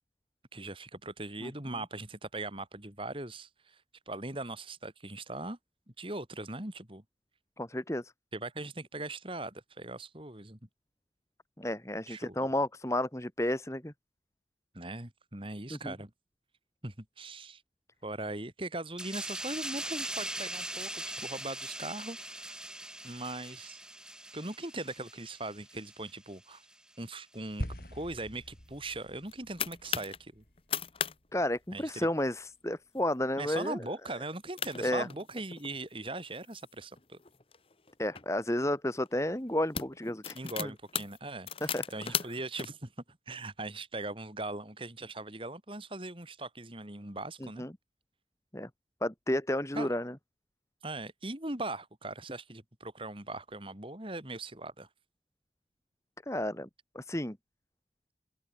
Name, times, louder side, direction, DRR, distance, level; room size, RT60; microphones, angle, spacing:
voice 1, 0.5-3.8 4.1-5.6 6.0-7.0 8.3-10.6 12.1-12.5 14.7-16.1 16.8-17.6 18.0-22.6 23.0-23.8 24.3-26.6 27.0-30.4 31.7-32.1 33.4-37.2 40.3-47.7 49.7-49.9 50.8-54.9, right 2 dB, 30° right, 3.3 m, -40 dB
voice 2, 7.6-8.1 11.6-13.9 15.7-15.9 31.3-33.8 34.8-35.1 38.0-40.7 41.6-42.2 47.4-47.7 48.5-48.7 49.0-50.1 56.3-56.7 57.0-57.4, left 1 dB, 15° left, 1.9 m, -32 dB
sound 1, 19.0-26.2 26.5-26.7, right 1 dB, 5° right, 4.6 m, -41 dB
sound 2, 27.6-32.0, equal, 55° left, 7.7 m, -44 dB
sound 3, 29.0-30.2 30.6-31.2 31.4-31.5 31.9-32.2 32.8-33.0 33.5-33.6 34.3-34.4 34.6-35.8 36.4-38.2 39.0-39.2 39.5-42.7, left 8 dB, 30° left, 1.1 m, -37 dB
open air
head